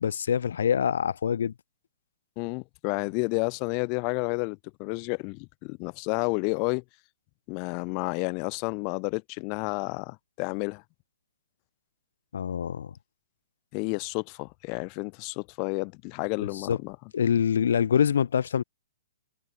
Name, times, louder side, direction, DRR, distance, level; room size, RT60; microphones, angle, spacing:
voice 1, 0.0-1.5 12.3-12.9 16.7-16.8 17.1-18.6, left 8 dB, 70° left, 0.8 m, -25 dB
voice 2, 2.4-6.8 7.5-10.8 13.7-17.0, left 37 dB, 30° left, 0.3 m, -31 dB
hypercardioid pair, 160°, 0 cm